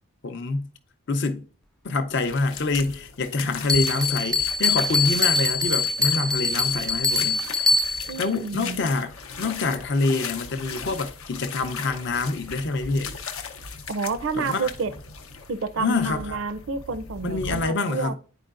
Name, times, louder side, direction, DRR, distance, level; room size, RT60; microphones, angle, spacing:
voice 1, 0.2-0.7 1.1-1.4 1.8-7.7 8.2-13.1 14.4-14.7 15.8-16.4 17.2-18.1, left 3 dB, 55° left, 0.6 m, -26 dB
sound 1, 2.3-17.6, left 5 dB, 90° left, 0.8 m, -37 dB
Bell, 3.7-8.2, left 3 dB, 5° left, 0.3 m, -23 dB
voice 2, 8.1-8.8 13.9-14.9 15.5-18.1, right 4 dB, 70° right, 0.5 m, -29 dB
9.8 x 4.6 x 2.4 m
head